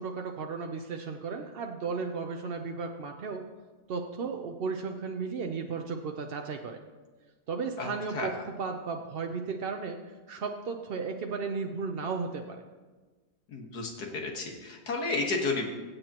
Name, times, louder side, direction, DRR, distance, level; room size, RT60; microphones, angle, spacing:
voice 1, 0.0-3.4 3.9-6.8 7.5-10.0 10.3-12.6, right 5 dB, 60° right, 3 dB, 0.6 m, -34 dB
voice 2, 13.5-15.7, left 3 dB, 70° left, 1 dB, 2.0 m, -32 dB
24.0 x 8.0 x 2.9 m, 1.3 s
omnidirectional pair, 1.8 m